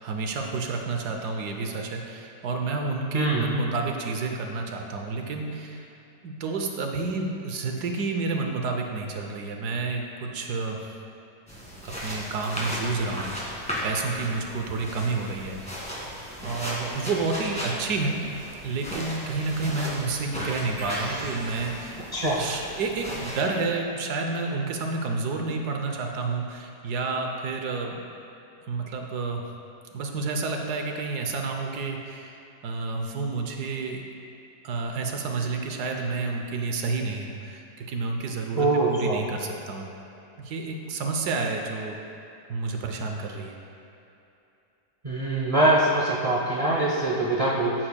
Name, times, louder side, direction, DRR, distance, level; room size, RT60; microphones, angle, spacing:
voice 1, 0.0-5.8 6.2-10.8 11.8-15.9 16.4-18.2 18.6-22.0 22.4-28.0 28.7-29.4 29.9-32.3 32.6-34.0 34.6-39.9 40.4-42.0 42.5-43.5, right 3 dB, 70° right, 2 dB, 1.3 m, -30 dB
sound 1, 11.5-23.4, equal, 5° left, 1.7 m, -36 dB
sound 2, 20.8-22.7, right 3 dB, 55° right, 0.9 m, -40 dB
voice 2, 22.1-22.4 38.6-39.2 45.0-47.7, right 2 dB, 40° right, -5 dB, 0.5 m, -23 dB
14.5 x 7.8 x 2.3 m, 2.8 s
omnidirectional pair, 1.9 m